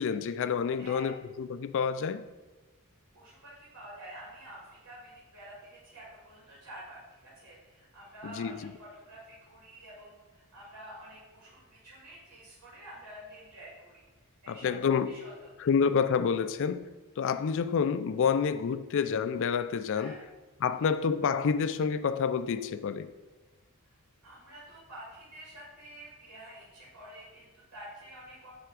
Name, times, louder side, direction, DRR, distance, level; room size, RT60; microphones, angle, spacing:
voice 1, 0.0-2.2 8.2-8.6 14.5-15.1 15.6-16.9 17.2-20.2 20.6-23.1, left 6 dB, 60° left, 0.4 m, -28 dB
voice 2, 0.8-1.1 3.1-14.1 14.4-15.3 15.6-15.7 19.9-20.2 20.7-20.8 24.2-28.5, right 1 dB, 80° right, 2.7 m, -49 dB
10.5 x 3.5 x 5.0 m
head